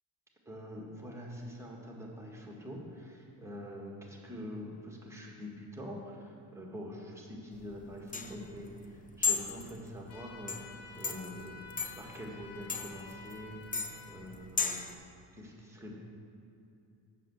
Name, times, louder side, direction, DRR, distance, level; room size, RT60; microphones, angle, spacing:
voice 1, 0.5-11.5 12.0-15.0 15.4-15.9, equal, 5° right, -2 dB, 1.7 m, -45 dB
sound 1, 7.5-14.9, left 5 dB, 20° left, 0.5 m, -37 dB
sound 2, 10.1-14.3, left 4 dB, 90° left, 1.1 m, -51 dB
7.5 x 6.7 x 6.1 m, 2.6 s
supercardioid pair, 90°, 45 cm